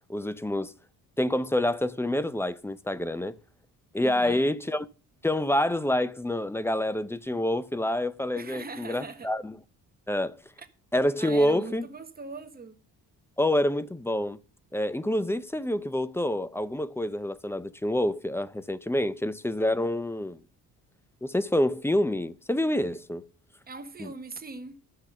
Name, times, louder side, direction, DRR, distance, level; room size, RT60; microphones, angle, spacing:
voice 1, 0.1-0.7 1.2-3.4 3.9-4.9 5.2-9.5 10.1-10.4 10.9-11.9 13.4-14.4 14.7-20.4 21.2-23.3 24.0-24.1, left 1 dB, 5° left, 0.5 m, -27 dB
voice 2, 4.0-4.5 8.3-9.3 10.6-10.7 11.2-12.8 23.7-24.8, right 4 dB, 25° right, 1.4 m, -41 dB
13.5 x 6.2 x 6.7 m
cardioid pair, 135°, 37 cm